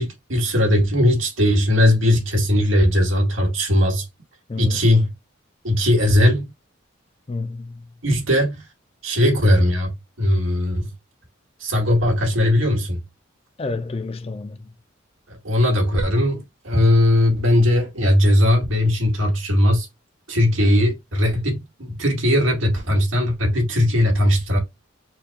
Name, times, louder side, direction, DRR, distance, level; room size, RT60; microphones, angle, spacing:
voice 1, 0.0-4.0 4.6-5.1 5.6-6.5 8.0-8.6 9.0-9.9 10.2-10.9 11.6-13.0 15.3-19.9 20.3-24.6, left 1 dB, 90° right, 2.0 m, -18 dB
voice 2, 4.5-4.9 7.3-7.9 13.6-14.7, left 3 dB, 30° left, 0.4 m, -30 dB
4.4 x 2.3 x 4.3 m
head